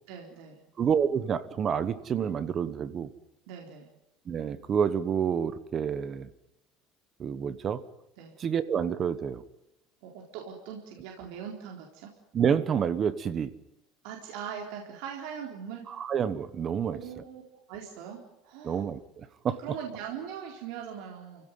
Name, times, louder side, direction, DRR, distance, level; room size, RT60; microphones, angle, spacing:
voice 1, 0.1-0.6 3.5-3.9 8.2-8.3 10.0-12.1 14.0-15.8 16.9-17.4 17.7-18.8 19.6-21.4, right 8 dB, 70° right, 0 dB, 4.1 m, -40 dB
voice 2, 0.8-3.1 4.3-6.3 7.2-7.8 8.4-9.4 12.3-13.5 15.9-17.2 18.6-19.6, right 7 dB, 25° right, 14 dB, 1.1 m, -28 dB
30.0 x 16.5 x 9.4 m, 0.84 s
cardioid pair, 170°, 0 cm